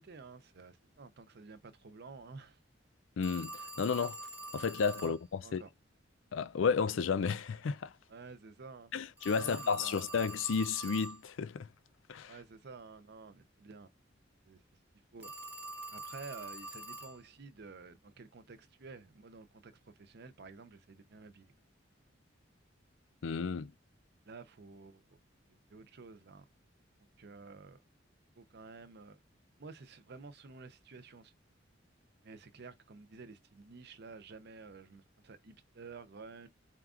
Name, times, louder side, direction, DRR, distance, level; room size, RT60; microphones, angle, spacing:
voice 1, 0.0-2.6 5.0-5.1 5.4-5.7 8.1-8.9 9.3-10.2 12.3-13.9 14.4-14.6 15.1-15.3 15.9-21.5 24.3-25.2 25.7-26.5 27.0-27.8 28.4-29.2 29.6-31.3 32.2-36.5, right 4 dB, 60° right, 0.6 m, -51 dB
voice 2, 3.2-4.2 4.5-5.6 6.3-7.9 8.9-11.7 12.1-12.3 23.2-23.7, left 5 dB, 85° left, 0.4 m, -32 dB
Telephone, 3.2-5.2 9.2-11.2 15.2-17.2, right 2 dB, 10° right, 0.8 m, -45 dB
4.4 x 2.4 x 3.7 m
head